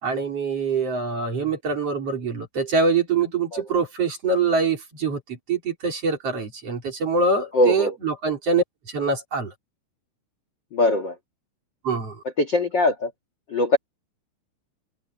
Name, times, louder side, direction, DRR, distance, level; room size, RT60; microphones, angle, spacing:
voice 1, 0.0-9.5 11.8-12.2, right 4 dB, 35° right, 4.5 m, -24 dB
voice 2, 7.5-7.9 10.7-11.1 12.4-13.1 13.5-13.8, left 2 dB, 80° left, 1.0 m, -21 dB
omnidirectional pair, 4.8 m